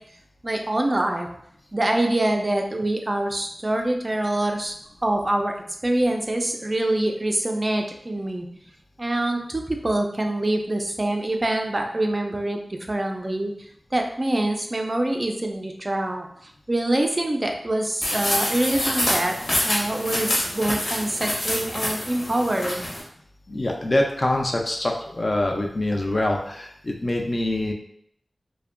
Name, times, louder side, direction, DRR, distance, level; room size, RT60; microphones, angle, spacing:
voice 1, 0.4-1.3 1.7-4.7 5.0-5.6 5.8-8.5 9.0-12.6 12.9-13.5 13.9-19.3 19.7-22.9, right 1 dB, 35° right, 3 dB, 0.3 m, -25 dB
sound 1, 18.0-23.0, left 1 dB, 75° left, 0.8 m, -26 dB
voice 2, 23.5-27.7, left 1 dB, 45° left, 1 dB, 0.4 m, -24 dB
2.5 x 2.1 x 2.4 m, 0.69 s
wide cardioid pair, 80°, 0 cm